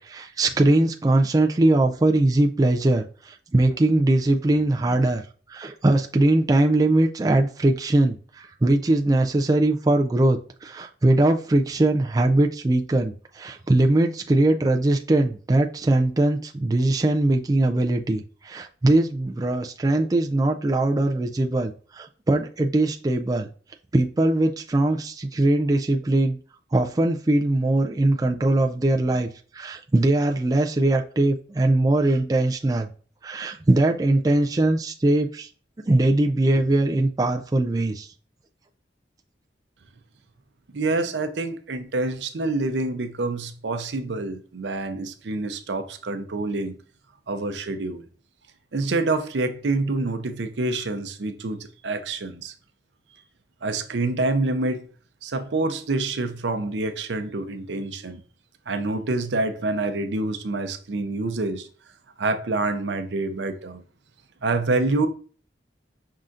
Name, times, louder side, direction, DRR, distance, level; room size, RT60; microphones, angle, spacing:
voice 1, 0.1-5.2 5.5-23.5 23.9-26.4 26.7-32.9 33.2-35.5 35.9-38.1, right 2 dB, 20° right, 0.3 m, -21 dB
voice 2, 40.7-46.8 47.3-48.1 48.7-52.5 53.6-54.9 55.2-58.2 58.7-61.7 62.2-63.8 64.4-65.1, right 2 dB, 85° right, 0.6 m, -27 dB
5.5 x 3.8 x 2.5 m
head